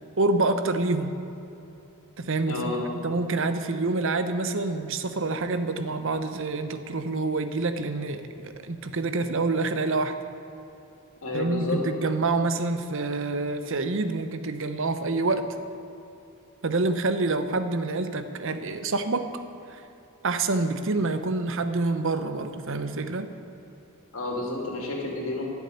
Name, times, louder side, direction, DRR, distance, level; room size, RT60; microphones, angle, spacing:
voice 1, 0.2-1.1 2.2-2.7 3.0-10.1 11.3-15.5 16.6-19.3 19.7-19.8 20.2-23.3, right 3 dB, 65° right, 9 dB, 0.8 m, -27 dB
voice 2, 2.5-2.8 11.2-11.8 24.1-25.4, left 2 dB, 70° left, -1 dB, 2.9 m, -30 dB
13.0 x 7.1 x 9.9 m, 2.9 s
head